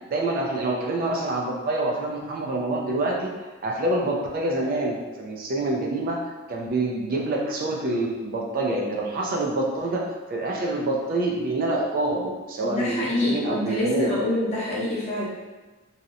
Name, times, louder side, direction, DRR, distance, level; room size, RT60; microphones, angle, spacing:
voice 1, 0.0-3.3 3.6-14.1, right 2 dB, 45° right, 0 dB, 0.3 m, -26 dB
voice 2, 12.6-15.3, left 1 dB, 30° left, -7 dB, 0.7 m, -26 dB
2.7 x 2.0 x 2.4 m, 1.2 s
head